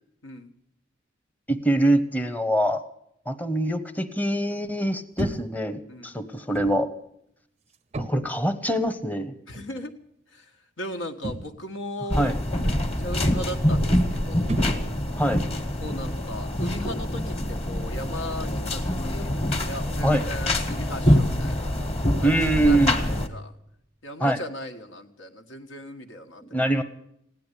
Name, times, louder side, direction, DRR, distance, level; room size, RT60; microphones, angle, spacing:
voice 1, 1.5-2.8 3.3-6.9 8.0-9.3 12.1-12.4 15.2-15.4 20.0-20.2 22.2-23.0 24.2-24.4 26.5-26.8, right 1 dB, 10° left, 8 dB, 0.8 m, -24 dB
sound 1, 5.2-5.7 6.6-6.9 7.9-8.4 9.5-9.8 11.2-11.7 12.6-13.1 14.5-15.2, right 2 dB, 35° right, 0.5 m, -33 dB
voice 2, 5.9-6.2 9.5-9.9 10.3-10.4 10.8-12.4 12.6-14.5 15.8-19.3 19.6-21.7 22.2-23.5 24.0-26.7, left 1 dB, 80° left, 6 dB, 1.6 m, -37 dB
sound 2, 12.1-23.3, left 1 dB, 30° left, 1.5 m, -25 dB
16.5 x 10.5 x 8.3 m, 0.76 s
head